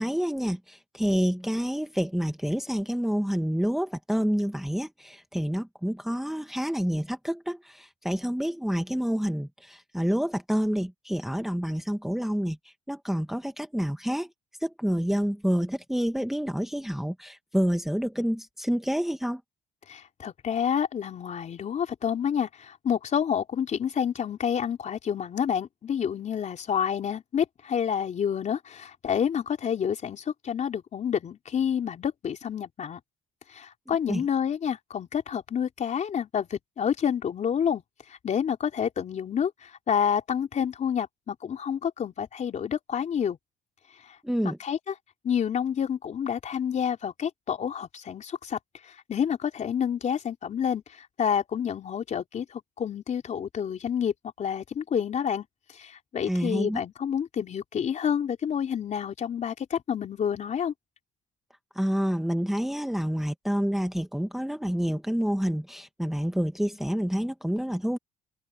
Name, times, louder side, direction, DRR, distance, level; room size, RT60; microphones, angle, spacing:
voice 1, 0.0-14.3 14.6-19.4 34.1-34.2 44.2-44.6 56.1-56.8 61.7-68.0, equal, ahead, 1.4 m, -28 dB
voice 2, 19.9-33.0 33.5-37.8 38.1-43.4 44.1-44.2 44.4-44.9 45.2-48.6 48.8-55.5 55.7-60.7, left 8 dB, 45° left, 3.9 m, -29 dB
open air
cardioid pair, 110°, 17 cm